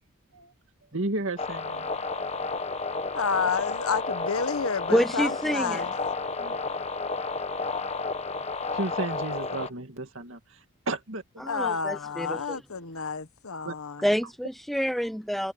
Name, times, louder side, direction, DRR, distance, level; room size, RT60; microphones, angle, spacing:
voice 1, 0.9-2.7 6.2-6.7 8.7-10.6 10.9-11.5 13.6-13.7, right 2 dB, 60° right, 2.5 m, -34 dB
sound 1, 1.4-9.7, left 4 dB, 30° left, 1.3 m, -31 dB
voice 2, 3.1-5.9 11.5-14.0, left 5 dB, 75° left, 1.1 m, -30 dB
voice 3, 4.9-5.9 11.4-12.6 14.0-15.5, equal, ahead, 0.5 m, -27 dB
head